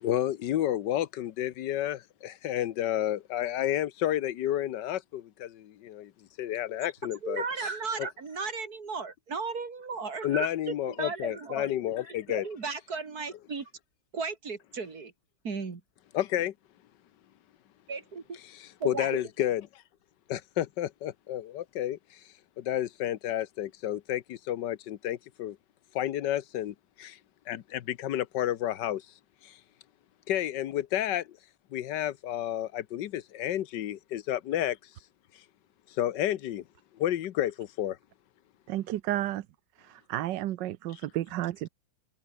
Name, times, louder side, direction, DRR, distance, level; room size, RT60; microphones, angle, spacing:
voice 1, 0.0-6.1 6.4-7.4 10.2-12.5 16.1-16.5 18.8-19.6 20.3-22.2 22.6-25.6 25.9-27.2 27.5-29.1 29.4-29.6 30.3-31.4 31.7-34.8 35.9-36.6 36.9-38.0, left 12 dB, 70° left, 1.5 m, -31 dB
voice 2, 6.8-11.7 12.0-13.7 14.1-15.1 15.4-15.8 17.9-18.4 18.8-19.2, right 4 dB, 55° right, 2.8 m, -36 dB
voice 3, 38.7-39.5 39.8-41.7, right 13 dB, 75° right, 1.4 m, -32 dB
omnidirectional pair, 2.0 m